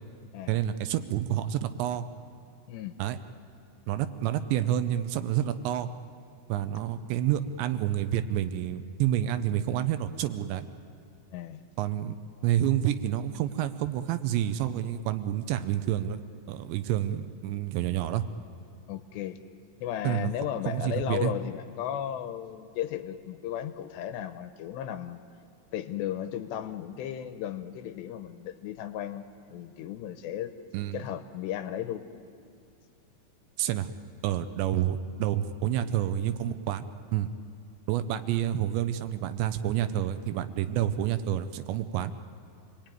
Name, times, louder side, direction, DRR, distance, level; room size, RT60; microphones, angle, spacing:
voice 1, 0.5-2.1 3.0-3.2 3.9-5.9 6.5-10.7 11.8-12.2 12.4-16.2 16.5-18.3 20.0-20.3 20.7-21.3 30.7-31.0 33.6-33.9 34.2-36.9 37.1-37.3 37.9-42.1, right 11 dB, 80° right, 10 dB, 2.9 m, -28 dB
voice 2, 18.9-19.4 19.8-25.2 25.7-30.5 30.9-32.1, left 10 dB, 80° left, 9 dB, 2.7 m, -35 dB
27.5 x 20.0 x 9.1 m, 2.4 s
omnidirectional pair, 5.3 m